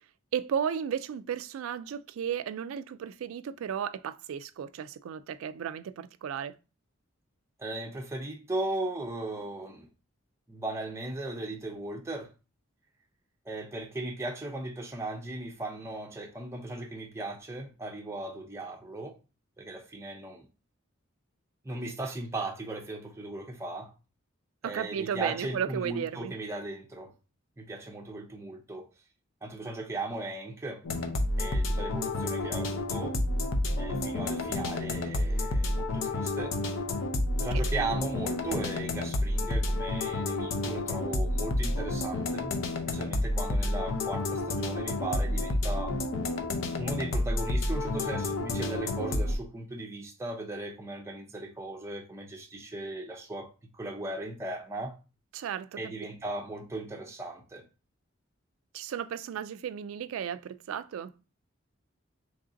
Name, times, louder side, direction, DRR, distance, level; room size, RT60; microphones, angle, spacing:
voice 1, 0.3-6.5 24.6-26.4 55.3-55.8 58.7-61.1, right 8 dB, 80° right, 0.3 m, -34 dB
voice 2, 7.6-9.9 10.5-12.3 13.5-19.1 19.6-20.5 21.6-23.9 24.6-27.1 27.6-28.9 29.4-30.8 31.4-33.1 33.8-36.6 37.4-42.5 42.9-46.0 46.7-54.9 55.8-57.6, right 2 dB, 15° right, 0.6 m, -37 dB
sound 1, 30.8-49.4, left 2 dB, 70° left, 0.6 m, -30 dB
3.2 x 2.6 x 3.7 m
head